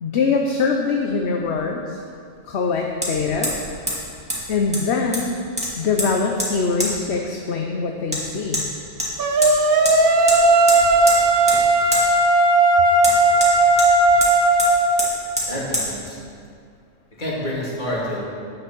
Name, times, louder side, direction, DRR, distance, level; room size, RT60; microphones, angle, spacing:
voice 1, 0.0-2.0 2.4-3.6 4.5-5.3 5.8-8.6, left 4 dB, 60° left, 2 dB, 1.0 m, -23 dB
Hammer, 1.1-1.2 3.0-3.1 3.4-3.6 3.9-4.0 4.3-4.4 4.7-5.3 5.6-6.1 6.4-6.5 6.8-6.9 8.1-8.2 8.5-8.6 9.0-9.5 9.8-10.0 10.3-10.4 10.7-11.2 11.5-11.6 11.9-12.0 13.0-13.9 14.2-14.3 14.6-14.7 15.0-15.1 15.4-15.5 15.7-15.9, equal, 5° right, 2.4 m, -24 dB
sound 1, 9.2-15.0, right 2 dB, 50° right, 0.9 m, -16 dB
voice 2, 15.5-16.1 17.2-18.3, left 1 dB, 40° left, -6 dB, 2.8 m, -27 dB
10.5 x 9.0 x 6.0 m, 2.3 s
omnidirectional pair, 1.3 m